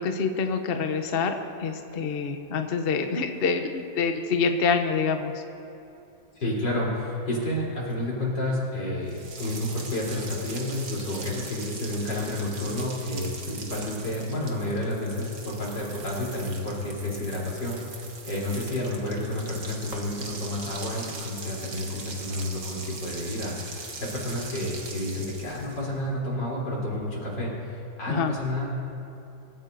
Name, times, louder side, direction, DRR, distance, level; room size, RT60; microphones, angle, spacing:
voice 1, 0.0-5.3 28.1-28.4, left 5 dB, 50° left, 5 dB, 0.7 m, -26 dB
voice 2, 6.4-17.8 18.2-27.5 28.0-28.7, left 1 dB, 70° left, -5 dB, 4.4 m, -30 dB
sound 1, 9.1-25.9, right 3 dB, 45° right, 1.6 m, -41 dB
24.5 x 13.0 x 2.7 m, 2.8 s
omnidirectional pair, 2.0 m